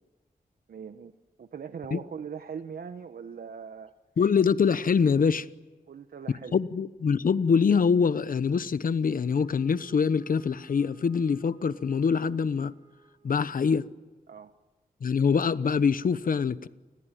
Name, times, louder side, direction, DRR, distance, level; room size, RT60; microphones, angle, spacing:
voice 1, 0.7-1.1 1.4-3.9 5.9-6.6 14.3-14.5, right 6 dB, 75° right, 1.1 m, -40 dB
voice 2, 4.2-5.5 6.5-12.7 13.2-13.9 15.0-16.7, left 6 dB, 65° left, 1.0 m, -24 dB
Wind instrument woodwind instrument, 9.0-13.7, right 1 dB, 25° right, 3.3 m, -59 dB
30.0 x 20.5 x 9.2 m
wide cardioid pair, 90°, 15 cm